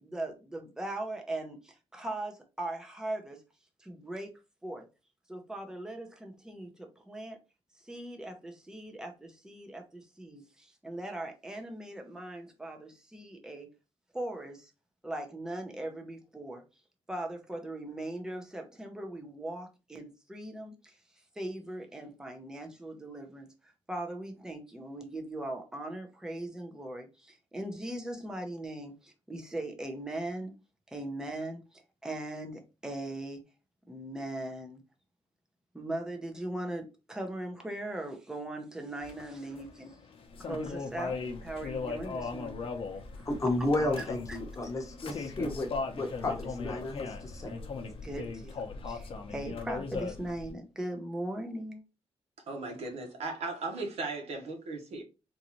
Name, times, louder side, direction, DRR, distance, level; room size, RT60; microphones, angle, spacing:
voice 1, 0.0-3.4 3.8-4.3 4.6-4.9 5.3-7.4 7.8-13.7 14.1-14.7 15.0-16.6 17.1-21.0 21.4-30.5 30.9-33.4 33.9-34.8 35.7-40.0 40.4-42.7 43.2-43.3 44.0-44.4 48.0-51.8, right 1 dB, 5° right, 0.7 m, -39 dB
sound 1, 39.0-50.5, left 4 dB, 60° left, 0.8 m, -38 dB
voice 2, 43.3-45.7 46.0-47.5, left 2 dB, 30° left, 0.9 m, -32 dB
voice 3, 52.5-55.0, right 3 dB, 85° right, 1.2 m, -37 dB
3.8 x 2.6 x 2.9 m
wide cardioid pair, 155°, 11 cm